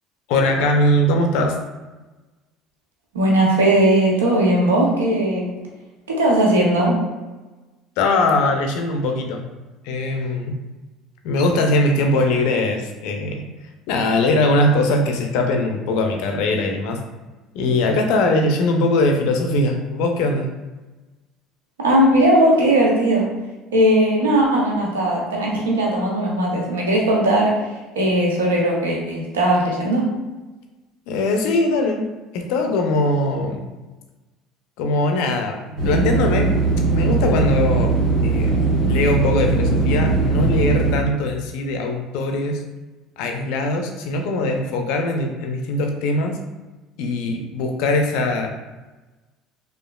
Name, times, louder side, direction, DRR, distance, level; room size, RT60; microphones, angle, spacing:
voice 1, 0.3-1.6 8.0-9.4 9.8-10.6 11.2-13.5 13.9-17.0 17.5-20.5 31.1-33.6 34.8-36.5 36.9-37.9 38.2-38.6 38.9-42.6 43.2-46.4 47.0-48.5, left 2 dB, 70° left, 4 dB, 0.4 m, -21 dB
voice 2, 3.1-5.5 6.1-6.9 21.8-23.3 23.7-27.5 28.0-30.1, right 1 dB, 90° right, -2 dB, 0.5 m, -18 dB
sound 1, 35.8-41.0, right 3 dB, 55° right, 1.4 m, -19 dB
2.9 x 2.3 x 2.2 m, 1.2 s
hypercardioid pair, 70°, 0 cm